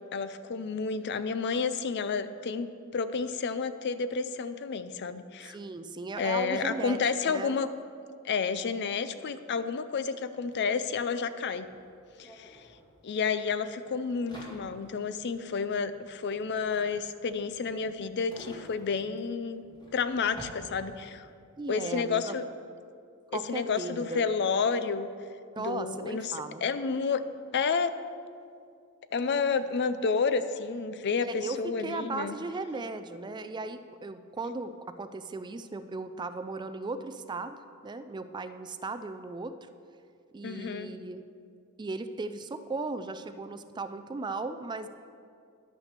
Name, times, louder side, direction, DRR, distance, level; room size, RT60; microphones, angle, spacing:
voice 1, 0.1-5.6 6.2-7.7 8.2-11.7 12.2-12.6 13.0-19.6 19.9-21.3 21.7-22.5 23.3-25.1 25.6-27.2 27.5-27.9 29.1-32.4 40.4-40.9, left 5 dB, 55° left, 12 dB, 0.5 m, -30 dB
voice 2, 5.4-7.6 21.6-22.4 23.3-24.3 25.5-26.6 31.2-37.6 37.8-39.6 40.3-41.2 41.8-44.9, right 3 dB, 20° right, 10 dB, 0.3 m, -37 dB
sound 1, 10.5-10.6 10.8-21.3, equal, 20° left, 2.1 m, -51 dB
10.5 x 6.0 x 6.6 m, 2.4 s
head